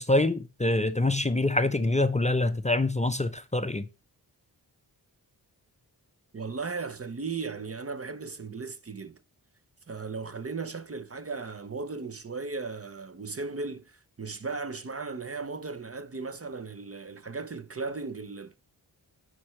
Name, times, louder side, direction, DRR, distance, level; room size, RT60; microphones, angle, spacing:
voice 1, 0.0-3.9, left 2 dB, 15° left, 0.6 m, -25 dB
voice 2, 6.3-9.2 9.9-18.6, right 4 dB, 35° right, 0.8 m, -36 dB
8.6 x 4.6 x 3.2 m
cardioid pair, 45°, 43 cm